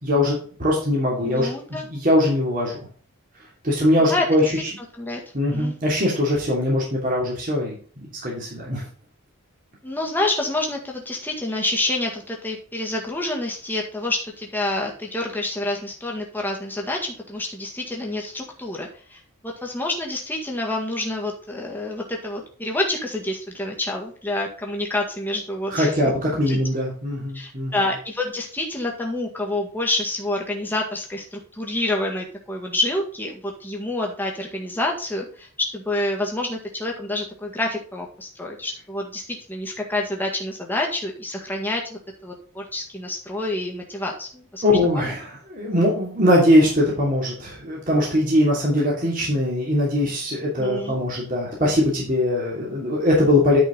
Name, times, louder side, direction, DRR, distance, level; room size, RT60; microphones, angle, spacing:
voice 1, 0.0-2.8 3.6-4.4 5.3-7.7 8.2-8.8 25.7-27.7 44.6-53.6, left 1 dB, 40° right, -4 dB, 3.0 m, -21 dB
voice 2, 1.2-1.9 4.1-4.5 5.0-5.2 5.5-5.7 9.8-26.1 26.5-26.6 27.3-45.1 50.6-50.9, left 2 dB, 10° left, -1 dB, 1.8 m, -28 dB
10.5 x 5.4 x 4.0 m, 0.43 s
head